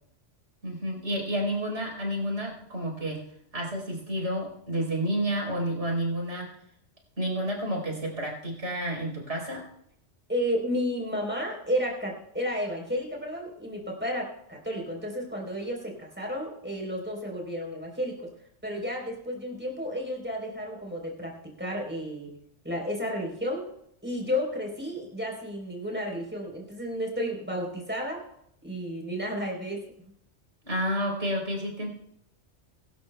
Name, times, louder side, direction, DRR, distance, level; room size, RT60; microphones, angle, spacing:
voice 1, 0.6-3.2 3.5-6.5 7.2-9.6 30.6-31.9, equal, 70° right, -1 dB, 4.3 m, -30 dB
voice 2, 10.3-18.3 18.6-22.3 22.6-23.7 24.0-28.2 28.6-30.1, equal, 10° right, -1 dB, 3.8 m, -32 dB
23.5 x 12.5 x 2.3 m, 0.73 s
omnidirectional pair, 1.2 m